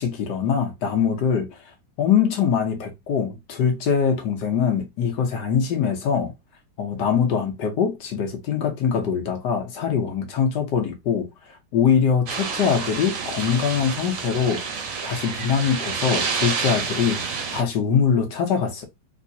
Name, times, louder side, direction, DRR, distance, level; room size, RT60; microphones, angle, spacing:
voice 1, 0.0-1.6 2.0-6.3 6.8-11.3 11.7-17.2 17.5-18.8, left 7 dB, 70° left, 1.3 m, -23 dB
sound 1, 12.3-17.6, right 5 dB, 60° right, 1.0 m, -29 dB
3.5 x 3.1 x 2.6 m
omnidirectional pair, 2.1 m